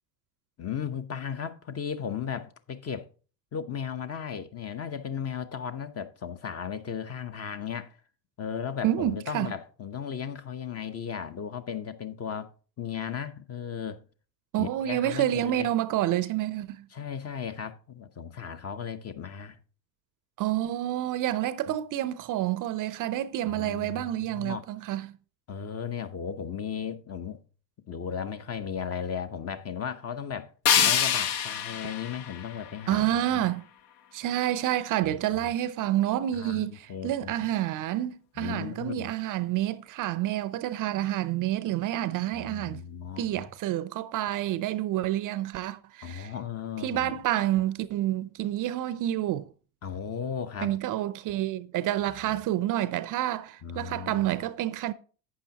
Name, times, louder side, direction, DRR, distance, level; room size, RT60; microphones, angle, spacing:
voice 1, 0.6-3.1 3.5-8.0 8.4-12.5 12.8-14.0 14.6-15.7 16.9-19.6 21.7-21.8 23.4-24.6 25.5-27.4 27.9-30.5 30.8-33.5 35.0-35.5 36.3-37.3 38.4-39.1 42.3-43.5 46.0-47.1 49.8-50.8 52.3-52.4 53.6-54.3, left 7 dB, 30° left, 0.9 m, -36 dB
voice 2, 8.8-9.5 14.5-16.9 20.4-25.2 30.8-30.9 32.9-33.6 34.1-42.8 43.2-46.3 46.8-49.5 50.6-54.9, right 13 dB, 40° right, 0.6 m, -28 dB
sound 1, 30.7-33.6, left 9 dB, 55° left, 1.0 m, -27 dB
11.5 x 8.6 x 2.8 m
hypercardioid pair, 75°, 50 cm